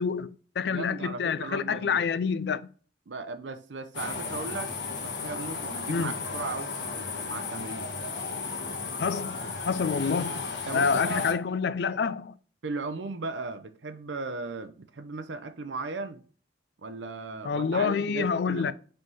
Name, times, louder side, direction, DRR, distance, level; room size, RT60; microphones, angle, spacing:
voice 1, 0.0-2.7 5.9-6.1 9.0-10.4 10.7-12.3 17.4-18.7, left 5 dB, 65° left, 0.4 m, -28 dB
voice 2, 0.6-2.0 3.1-4.7 5.0-7.9 10.7-11.3 12.6-16.2 16.8-18.7, right 3 dB, 85° right, 0.7 m, -37 dB
sound 1, 3.9-11.3, left 4 dB, 80° left, 1.2 m, -34 dB
5.4 x 3.5 x 5.4 m
head